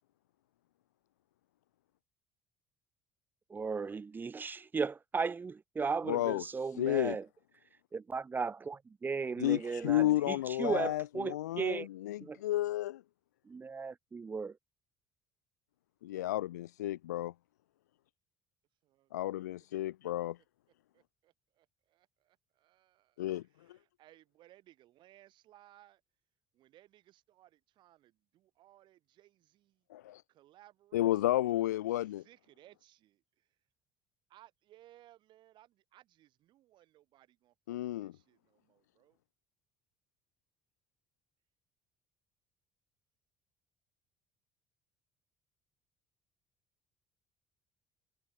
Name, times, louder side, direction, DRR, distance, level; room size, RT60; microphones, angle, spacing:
voice 1, 3.5-7.3 7.9-11.9 12.2-12.4 13.5-14.6, right 5 dB, 20° right, 0.4 m, -36 dB
voice 2, 6.1-6.4 6.7-7.2 9.4-13.0 16.0-17.3 19.1-20.4 23.2-23.4 23.7-23.8 29.9-30.2 30.9-32.2 37.7-38.1, left 14 dB, 80° left, 0.5 m, -32 dB
voice 3, 18.8-19.4 20.9-26.0 26.5-29.9 30.3-31.5 32.0-33.6 34.3-39.2, right 14 dB, 60° right, 6.5 m, -63 dB
figure-of-eight pair, 55°, 9 cm